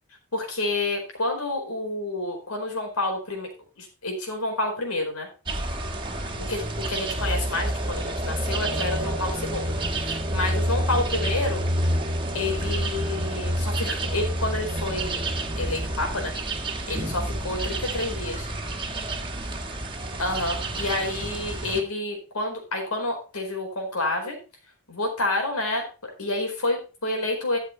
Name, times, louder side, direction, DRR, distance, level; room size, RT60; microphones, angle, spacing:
voice 1, 0.3-3.5 3.8-5.3 6.5-6.6 6.9-11.6 12.3-16.3 16.9-18.5 20.2-24.4 24.9-27.6, left 2 dB, 90° left, 2 dB, 4.5 m, -29 dB
sound 1, 5.5-21.8, right 1 dB, 25° right, 1.5 m, -28 dB
13.0 x 6.7 x 4.4 m, 0.33 s
head